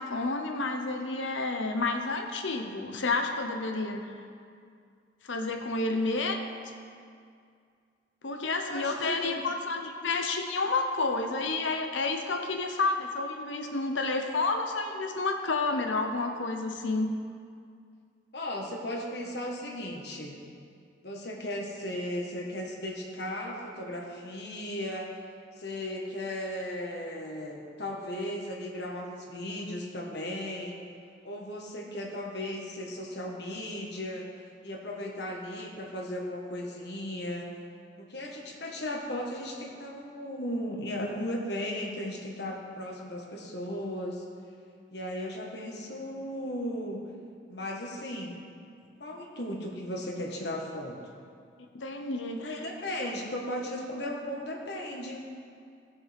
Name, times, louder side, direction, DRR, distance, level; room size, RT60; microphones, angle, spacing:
voice 1, 0.0-4.1 5.2-6.4 8.2-17.1 51.7-52.6, left 3 dB, 80° left, 5 dB, 0.9 m, -30 dB
voice 2, 8.6-8.9 9.2-9.4 18.3-20.4 21.0-25.1 25.6-30.8 31.2-34.3 34.6-37.5 38.0-44.2 44.9-47.0 47.5-48.4 49.0-51.0 52.4-55.2, left 1 dB, 60° left, 0 dB, 1.4 m, -36 dB
16.5 x 7.1 x 3.5 m, 2.3 s
head